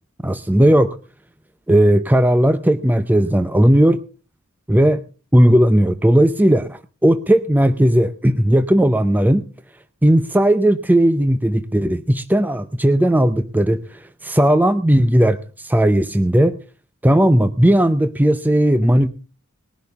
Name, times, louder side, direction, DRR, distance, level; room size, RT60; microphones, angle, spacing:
voice 1, 0.2-1.0 1.7-4.0 4.7-5.0 5.3-9.5 10.0-13.8 14.2-16.6 17.0-19.1, right 1 dB, 10° right, 10 dB, 0.6 m, -16 dB
20.5 x 11.5 x 3.6 m, 0.35 s
head